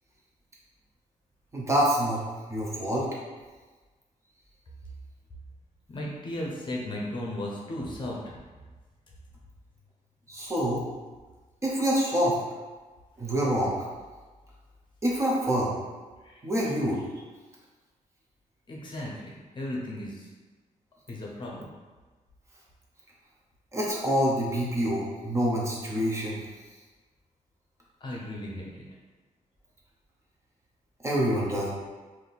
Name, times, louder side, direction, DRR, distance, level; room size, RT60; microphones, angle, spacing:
voice 1, 1.5-2.2 2.5-3.1 10.3-10.8 11.6-12.4 13.2-13.8 15.0-15.7 16.4-17.0 23.7-26.4 31.0-31.7, equal, 20° right, -4 dB, 0.7 m, -26 dB
voice 2, 5.9-8.2 16.2-16.4 18.7-20.2 21.1-21.7 28.0-28.7, left 1 dB, 35° left, -3 dB, 0.7 m, -35 dB
3.5 x 2.6 x 4.0 m, 1.3 s
wide cardioid pair, 160°, 14 cm